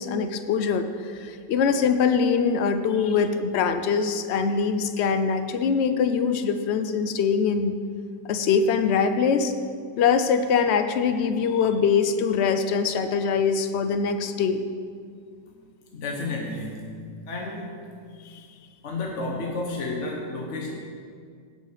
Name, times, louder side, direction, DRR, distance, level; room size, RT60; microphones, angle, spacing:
voice 1, 0.0-7.8 8.3-9.5 10.0-14.6, left 6 dB, 70° left, 9 dB, 0.6 m, -23 dB
voice 2, 15.9-16.9 17.3-17.7 18.8-20.7, left 2 dB, 50° left, -1 dB, 1.3 m, -31 dB
17.0 x 5.7 x 4.9 m, 2.1 s
omnidirectional pair, 1.8 m